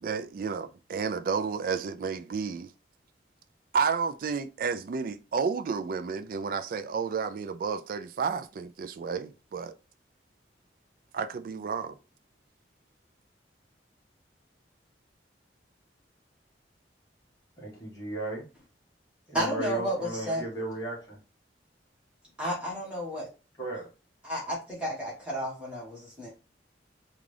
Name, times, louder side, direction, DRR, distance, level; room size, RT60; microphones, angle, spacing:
voice 1, 0.0-2.7 3.7-9.7 11.1-12.0, right 5 dB, 50° right, 0.3 m, -31 dB
voice 2, 17.6-18.5 19.3-21.2 23.6-23.9, right 2 dB, 20° left, 1.6 m, -35 dB
voice 3, 19.3-20.4 22.4-23.3 24.2-26.3, equal, 5° right, 1.3 m, -32 dB
3.7 x 2.4 x 3.2 m
head